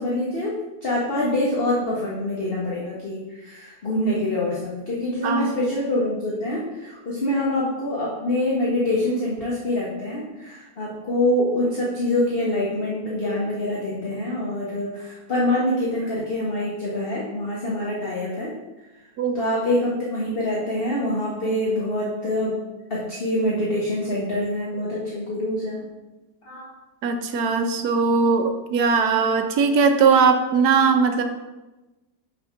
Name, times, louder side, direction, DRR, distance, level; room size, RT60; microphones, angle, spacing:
voice 1, 0.0-18.5 19.3-22.6 22.9-25.8 26.4-26.7, left 1 dB, 35° left, -6 dB, 1.3 m, -25 dB
voice 2, 27.0-31.2, right 5 dB, 70° right, 6 dB, 1.2 m, -19 dB
6.1 x 4.2 x 5.7 m, 1.1 s
omnidirectional pair, 1.9 m